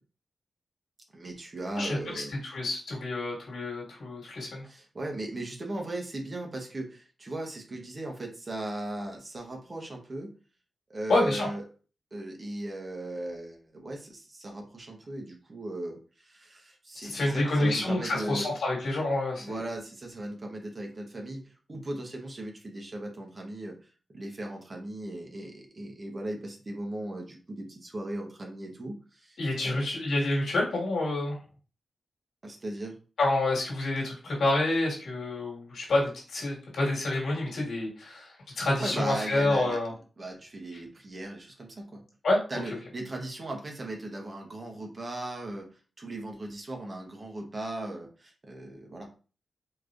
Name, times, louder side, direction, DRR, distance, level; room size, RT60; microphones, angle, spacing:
voice 1, 1.1-2.3 4.6-10.3 10.9-11.6 12.1-18.5 19.4-23.8 24.1-29.4 29.6-29.8 32.4-33.0 38.5-39.8 40.2-42.0 42.5-45.7 46.0-49.1, right 1 dB, 40° right, 1 dB, 1.2 m, -38 dB
voice 2, 1.8-4.7 11.1-11.5 17.0-19.7 29.4-31.4 33.2-39.9 42.2-42.4, left 2 dB, 80° left, -3 dB, 2.0 m, -28 dB
4.5 x 3.0 x 2.6 m, 0.37 s
cardioid pair, 60°, 0 cm